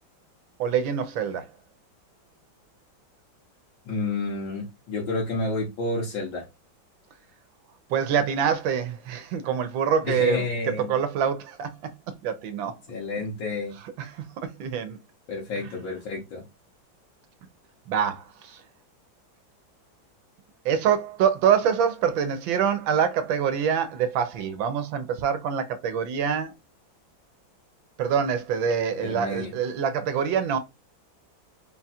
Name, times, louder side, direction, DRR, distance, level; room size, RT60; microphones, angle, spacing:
voice 1, 0.6-1.5 7.9-10.4 10.8-11.9 12.2-12.7 14.0-15.0 17.9-18.6 20.6-26.5 28.0-30.6, right 7 dB, 80° right, 1.4 m, -25 dB
voice 2, 3.9-6.5 10.1-10.9 12.9-13.8 15.3-16.4 29.0-29.5, left 3 dB, 75° left, 1.8 m, -30 dB
4.0 x 2.3 x 4.1 m
omnidirectional pair, 2.1 m